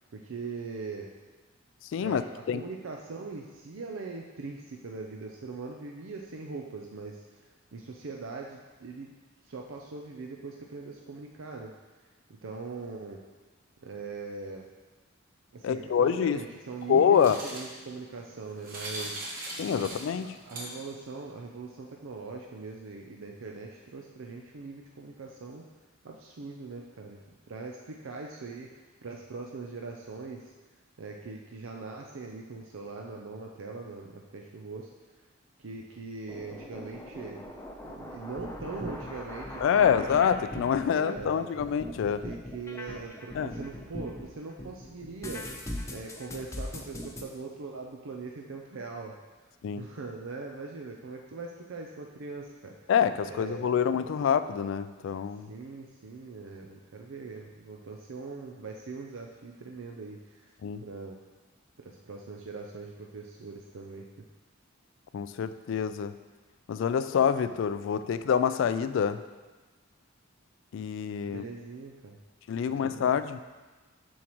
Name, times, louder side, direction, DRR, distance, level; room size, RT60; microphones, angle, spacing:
voice 1, 0.1-1.1 2.0-9.1 9.4-11.7 12.4-13.2 13.8-14.6 15.5-19.3 19.8-25.6 26.0-27.2 27.5-28.7 29.0-30.5 31.0-34.9 35.6-37.4 37.8-40.1 40.8-41.5 42.2-45.5 45.9-49.2 49.8-52.7 53.3-54.1 55.5-60.5 60.8-61.2 61.8-64.0 71.2-72.2 72.7-73.1, right 4 dB, 75° right, 0 dB, 0.5 m, -41 dB
voice 2, 1.9-2.2 2.5-2.6 15.6-16.4 16.9-17.4 19.6-20.3 39.6-42.3 43.4-43.5 49.6-49.8 52.9-55.5 60.6-60.8 65.1-66.1 66.7-69.2 70.7-71.4 72.5-73.4, left 7 dB, 65° left, 11 dB, 0.3 m, -26 dB
sound 1, 16.4-21.1, right 1 dB, 45° right, 1.4 m, -41 dB
sound 2, 36.3-44.3 44.6-47.2, left 1 dB, 15° left, 0.6 m, -40 dB
7.1 x 6.3 x 3.0 m, 1.3 s
head